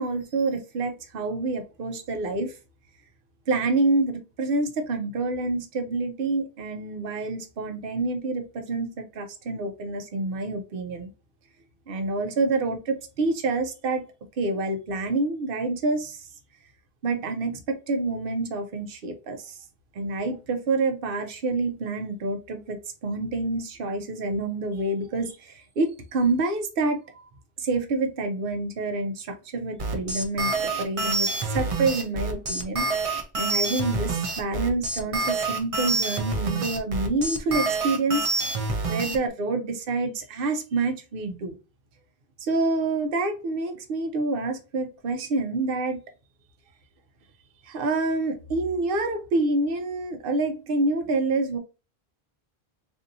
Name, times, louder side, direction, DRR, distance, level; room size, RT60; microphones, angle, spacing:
voice 1, 0.0-2.5 3.5-11.1 11.9-14.0 14.4-16.3 17.0-19.6 19.9-27.2 27.6-32.9 33.4-38.3 38.9-41.5 42.4-46.0 47.6-51.6, right 3 dB, 65° right, 0.9 m, -27 dB
sound 1, 29.8-39.2, right 3 dB, 40° right, 0.6 m, -27 dB
3.9 x 2.6 x 2.7 m
omnidirectional pair, 1.0 m